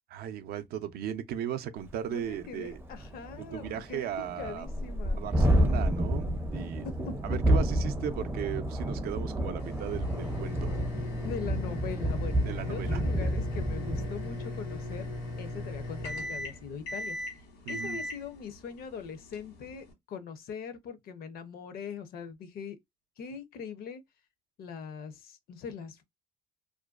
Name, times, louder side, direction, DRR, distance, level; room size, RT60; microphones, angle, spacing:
voice 1, 0.1-2.8 3.4-4.7 5.2-6.9 7.2-10.7 12.4-13.3 17.7-18.0, right 10 dB, 65° right, 0.4 m, -37 dB
Thunderstorm, 1.9-2.0 2.3-2.4 2.7-16.3, right 1 dB, 15° right, 0.4 m, -30 dB
voice 2, 2.1-4.1 4.4-5.2 7.1-7.2 11.2-15.1 15.4-17.2 17.7-22.8 23.2-24.0 24.6-26.0, left 6 dB, 60° left, 0.5 m, -41 dB
sound 1, 9.6-19.9, left 2 dB, 85° left, 1.2 m, -38 dB
2.5 x 2.2 x 2.3 m
cardioid pair, 110°, 17 cm